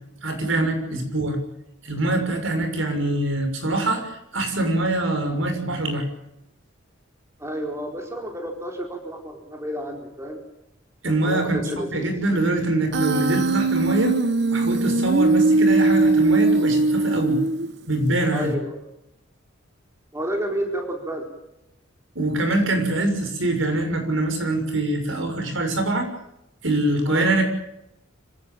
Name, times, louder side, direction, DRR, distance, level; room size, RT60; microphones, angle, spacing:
voice 1, 0.2-1.4 1.8-6.1 11.0-11.6 11.9-14.2 14.5-17.4 17.9-18.5 22.1-26.1 26.6-27.4, right 2 dB, 70° right, 5 dB, 6.6 m, -24 dB
voice 2, 7.4-10.4 11.1-12.1 18.3-18.8 20.1-21.3 27.1-27.3, equal, 15° right, 2 dB, 4.4 m, -30 dB
Human voice, 12.9-17.9, right 3 dB, 55° right, 1.1 m, -20 dB
25.5 x 17.5 x 8.8 m, 0.85 s
head